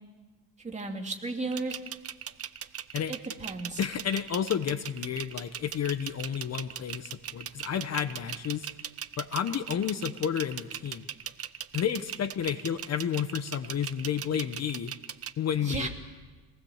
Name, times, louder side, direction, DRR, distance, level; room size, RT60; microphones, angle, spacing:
voice 1, 0.6-1.8 3.1-3.8 15.6-15.9, right 3 dB, 15° right, 2 dB, 2.7 m, -34 dB
sound 1, 1.5-15.3, right 9 dB, 35° right, 0.8 m, -39 dB
voice 2, 3.8-8.7 9.2-11.1 11.7-14.9 15.4-15.9, left 8 dB, 40° left, 10 dB, 1.0 m, -31 dB
27.0 x 19.0 x 7.3 m, 1.3 s
cardioid pair, 130°, 40 cm